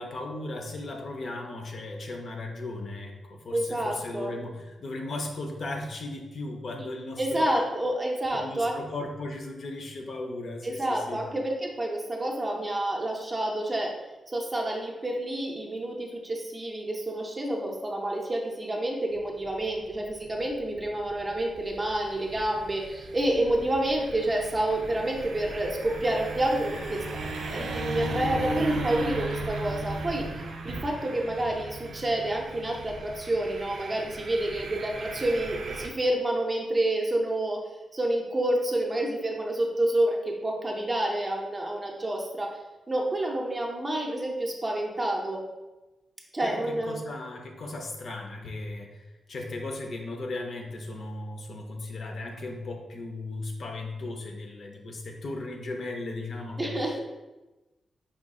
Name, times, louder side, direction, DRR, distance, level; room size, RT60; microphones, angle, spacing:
voice 1, 0.0-7.6 8.3-11.2 46.4-56.8, left 2 dB, 50° left, 2 dB, 0.5 m, -36 dB
voice 2, 3.5-4.3 7.2-8.8 10.6-13.9 14.3-27.0 27.5-37.6 37.9-42.6 42.9-45.4 46.3-47.0 56.6-57.0, right 1 dB, 20° right, 0 dB, 0.5 m, -29 dB
sound 1, 19.1-35.9, right 2 dB, 90° right, 0.5 m, -36 dB
4.9 x 2.3 x 3.6 m, 1.1 s
wide cardioid pair, 170°, 0 cm